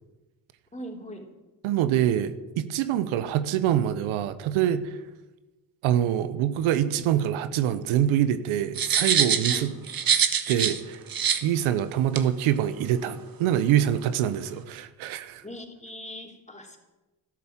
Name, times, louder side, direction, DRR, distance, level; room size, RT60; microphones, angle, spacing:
voice 1, 0.7-1.3 9.5-9.7 15.4-16.8, equal, 15° left, 2 dB, 3.7 m, -40 dB
voice 2, 1.6-5.0 5.8-9.7 10.5-11.0 11.4-15.4, right 10 dB, 85° right, 12 dB, 1.0 m, -25 dB
sound 1, 8.8-10.8 11.1-11.4 12.2-12.3, right 7 dB, 45° right, 1.6 m, -24 dB
12.5 x 12.5 x 7.4 m, 1.1 s
supercardioid pair, 65°, 47 cm